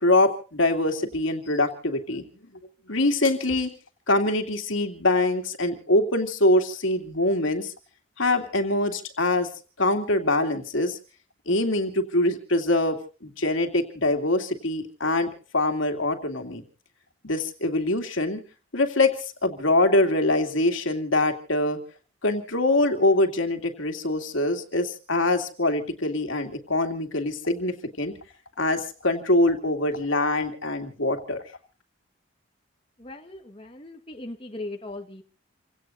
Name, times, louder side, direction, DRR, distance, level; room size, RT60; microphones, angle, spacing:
voice 1, 0.0-2.2 2.9-3.7 4.1-7.7 8.2-9.5 9.8-11.0 11.5-16.6 17.2-18.4 18.7-19.1 19.4-21.8 22.2-28.1 28.6-31.4, left 2 dB, 75° left, 5 dB, 2.8 m, -24 dB
voice 2, 33.0-35.2, left 2 dB, 25° left, 3 dB, 1.6 m, -38 dB
29.0 x 17.5 x 2.7 m, 0.37 s
head